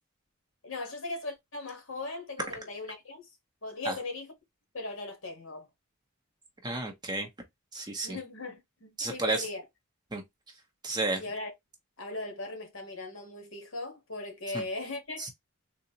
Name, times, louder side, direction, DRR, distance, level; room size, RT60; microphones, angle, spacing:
voice 1, 0.6-3.3 3.6-4.3 4.7-5.7 8.0-9.6 11.2-11.5 12.0-15.3, left 2 dB, 60° left, 1.2 m, -38 dB
voice 2, 6.6-7.3 7.7-8.2 9.0-9.5 10.1-10.2 10.8-11.2 14.5-14.6 15.2-15.3, right 2 dB, 20° right, 0.8 m, -31 dB
3.9 x 2.4 x 2.8 m
head